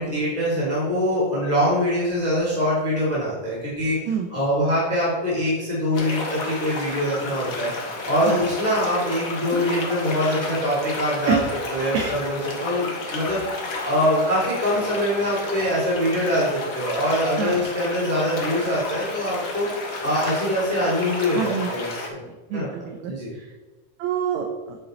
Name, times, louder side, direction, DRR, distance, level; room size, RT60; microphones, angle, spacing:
voice 1, 0.0-4.0 4.3-7.7 8.1-11.4 11.7-13.4 13.8-19.7 20.0-22.2 22.5-23.3, equal, 5° left, -7 dB, 2.6 m, -23 dB
sound 1, 5.9-22.1, left 3 dB, 50° left, 1.0 m, -32 dB
voice 2, 21.3-21.7 22.2-23.5 24.0-24.8, right 7 dB, 75° right, 3 dB, 2.0 m, -27 dB
8.6 x 6.8 x 4.0 m, 1.2 s
omnidirectional pair, 3.5 m